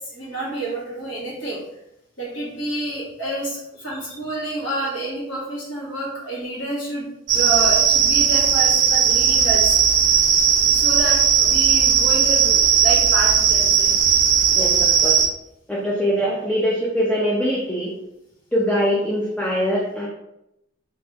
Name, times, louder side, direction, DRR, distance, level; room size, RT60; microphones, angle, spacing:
voice 1, 0.1-1.6 2.2-9.8 10.7-13.9, right 2 dB, 75° left, -6 dB, 1.5 m, -28 dB
sound 1, 7.3-15.3, right 7 dB, 65° right, 0.5 m, -17 dB
voice 2, 14.6-15.2 15.7-17.9 18.5-20.1, equal, 5° left, -4 dB, 0.4 m, -22 dB
3.4 x 2.6 x 3.3 m, 0.84 s
head